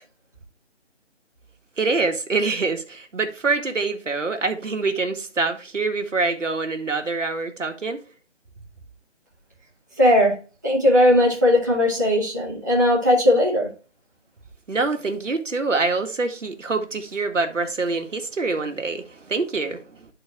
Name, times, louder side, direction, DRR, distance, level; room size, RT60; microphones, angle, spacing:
voice 1, 1.8-8.0 14.7-20.1, right 3 dB, 85° right, 1.4 m, -25 dB
voice 2, 10.0-10.4 10.6-13.7, left 1 dB, 15° right, 0.9 m, -18 dB
11.0 x 4.0 x 3.5 m
figure-of-eight pair, 175°, 37 cm